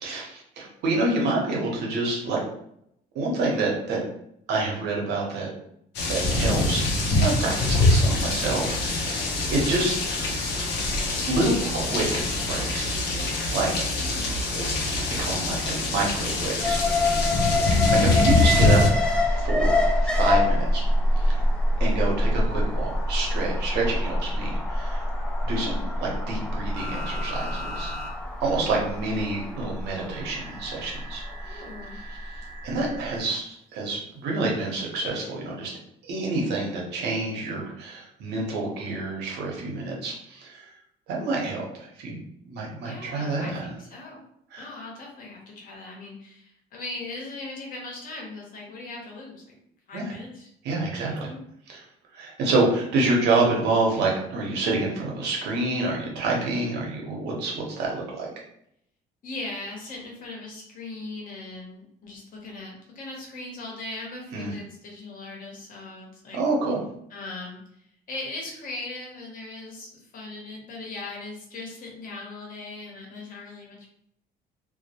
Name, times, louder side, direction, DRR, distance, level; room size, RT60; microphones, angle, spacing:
voice 1, 0.0-2.4 3.1-4.0 4.5-5.5 6.1-10.0 11.3-13.9 14.5-16.8 17.7-20.8 21.2-21.4 21.8-25.0 25.4-27.9 28.4-31.6 32.6-35.7 36.0-40.7 41.1-42.2 42.5-43.7 44.5-44.6 49.9-50.0 50.6-51.3 51.7-51.8 52.1-58.3 64.3-64.5 66.3-66.8, right 2 dB, 80° right, -1 dB, 0.8 m, -28 dB
sound 1, 5.9-18.9, left 2 dB, 80° left, 0.6 m, -24 dB
voice 2, 14.0-14.3 25.5-25.9 31.4-32.0 42.8-44.2 44.6-49.6 49.9-50.5 51.0-51.4 59.2-66.4 67.1-73.9, left 2 dB, 55° left, -1 dB, 0.9 m, -39 dB
Alarm, 16.6-32.7 33.0-33.1, left 1 dB, 5° left, 0.3 m, -25 dB
sound 2, 26.7-28.1 28.5-28.6 30.1-33.2 34.9-35.0, equal, 45° right, 0.7 m, -40 dB
2.1 x 2.1 x 2.7 m, 0.73 s
cardioid pair, 110°, 17 cm